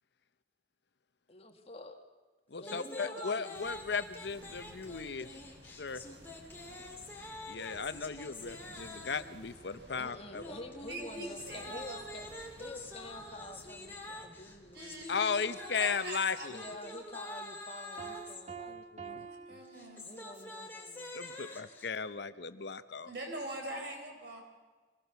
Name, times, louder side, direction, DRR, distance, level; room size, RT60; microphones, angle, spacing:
voice 1, 1.3-2.0 2.6-3.6 9.9-12.3 12.6-15.3 16.5-18.8 20.0-21.1, left 2 dB, 35° left, 5 dB, 1.8 m, -48 dB
voice 2, 2.5-5.3 5.8-6.0 7.2-10.4 15.1-16.6 18.7-19.3 21.1-23.1, left 5 dB, 65° left, 12 dB, 0.8 m, -36 dB
sound 1, 2.6-9.4 10.3-18.4 19.6-21.9, left 1 dB, 10° left, 2.8 m, -46 dB
sound 2, 3.6-17.5, equal, 85° right, 7.3 m, -57 dB
voice 3, 10.9-12.0 14.7-15.3 15.6-17.0 19.1-20.1 23.0-24.4, right 1 dB, 60° right, 2 dB, 4.4 m, -43 dB
Piano, 18.0-20.5, right 6 dB, 40° right, 1.1 m, -47 dB
24.0 x 18.5 x 6.9 m, 1.3 s
head